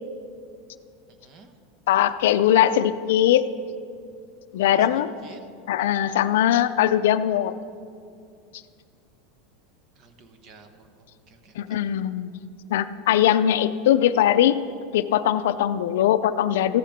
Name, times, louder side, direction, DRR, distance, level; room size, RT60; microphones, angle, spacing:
voice 1, 1.2-1.5 4.5-5.4 10.0-11.8, right 4 dB, 35° right, 7 dB, 1.1 m, -52 dB
voice 2, 1.9-3.4 4.5-5.1 5.7-7.6 11.6-12.3 12.7-14.6 14.9-16.8, left 11 dB, 80° left, 13 dB, 0.5 m, -20 dB
15.0 x 13.0 x 3.6 m, 2.4 s
supercardioid pair, 160°, 0 cm